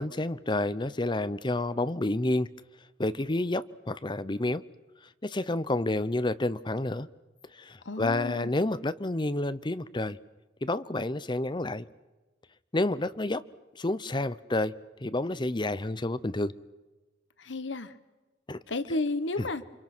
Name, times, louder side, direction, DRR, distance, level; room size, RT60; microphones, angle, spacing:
voice 1, 0.0-2.5 3.0-4.6 5.2-7.1 7.5-10.2 10.6-11.9 12.7-13.4 13.8-14.7 15.0-16.5 18.5-18.6 19.4-19.5, left 2 dB, 25° left, 14 dB, 0.7 m, -29 dB
voice 2, 7.8-8.5 17.4-17.9 18.7-19.6, left 2 dB, 85° left, 13 dB, 1.3 m, -32 dB
29.0 x 26.0 x 6.2 m, 1.1 s
head